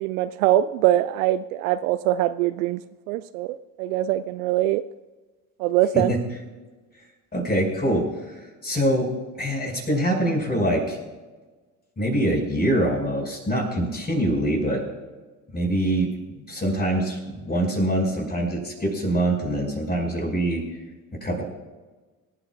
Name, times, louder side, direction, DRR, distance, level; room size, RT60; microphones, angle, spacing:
voice 1, 0.0-2.8 3.1-4.8 5.6-6.1, right 13 dB, 60° right, 14 dB, 0.5 m, -23 dB
voice 2, 7.3-8.0 8.6-9.1 9.4-11.0 12.0-14.8 15.5-16.1 16.5-20.6 21.2-21.4, right 1 dB, 20° left, 1 dB, 5.5 m, -24 dB
25.0 x 12.5 x 2.4 m, 1.3 s
figure-of-eight pair, 55°, 48 cm